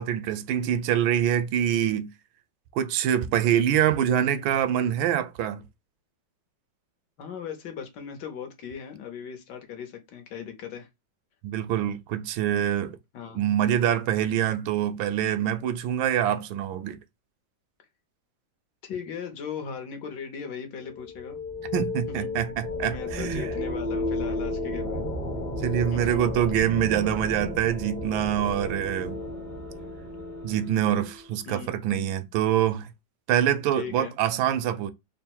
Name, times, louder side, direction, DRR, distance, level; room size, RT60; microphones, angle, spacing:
voice 1, 0.0-2.1 2.7-5.6 11.4-13.0 13.3-17.0 21.7-23.5 25.6-29.2 30.4-32.9 33.3-34.9, right 10 dB, 85° right, 1.4 m, -25 dB
voice 2, 7.2-10.9 13.1-13.4 18.8-21.4 22.2-22.3 22.8-25.0 25.9-26.2 31.4-31.7 33.8-34.1, left 7 dB, 65° left, 1.4 m, -38 dB
sound 1, 20.8-31.4, left 2 dB, 35° left, 0.8 m, -33 dB
3.7 x 2.1 x 4.3 m
omnidirectional pair, 2.1 m